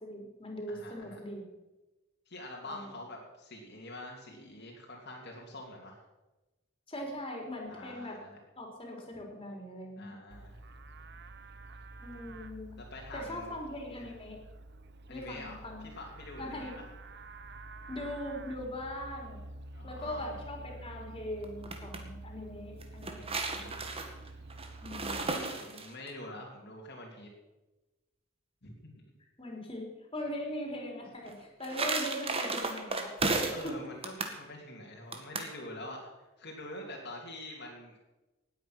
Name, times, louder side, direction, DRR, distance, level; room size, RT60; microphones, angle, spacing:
voice 1, 0.0-1.5 2.6-2.9 6.9-8.2 8.6-10.1 12.0-12.8 13.1-14.4 15.1-15.9 16.4-16.8 17.9-19.4 19.8-23.7 24.8-25.4 29.4-33.1 33.4-33.8, left 1 dB, 25° left, 0 dB, 4.0 m, -40 dB
voice 2, 0.7-1.2 2.3-6.0 7.7-8.4 10.0-10.6 12.8-13.6 13.9-14.1 15.1-15.6 16.0-16.8 19.7-20.2 23.1-23.7 25.2-27.3 28.6-29.0 33.5-36.0 36.4-38.0, left 1 dB, 55° left, -2 dB, 2.8 m, -46 dB
Livestock farm animals working animals, 10.3-25.2, right 2 dB, 60° right, 1.0 m, -48 dB
sound 1, 21.4-22.0 22.8-26.1 31.3-33.7 34.0-34.4 35.1-35.5, right 3 dB, 30° right, 1.8 m, -34 dB
18.5 x 9.0 x 6.0 m, 1.1 s
head